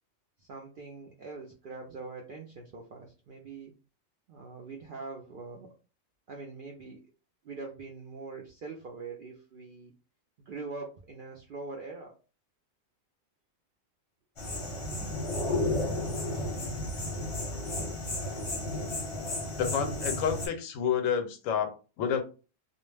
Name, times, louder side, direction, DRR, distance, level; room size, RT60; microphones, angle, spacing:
voice 1, 0.4-3.7 4.3-5.7 6.3-7.0 7.4-9.9 10.4-12.1 14.9-15.0, right 3 dB, 70° right, 0.5 m, -43 dB
sound 1, 14.4-20.5, left 1 dB, 30° left, 0.6 m, -33 dB
voice 2, 19.5-22.2, left 8 dB, 80° left, 1.0 m, -29 dB
2.3 x 2.0 x 3.2 m
omnidirectional pair, 1.4 m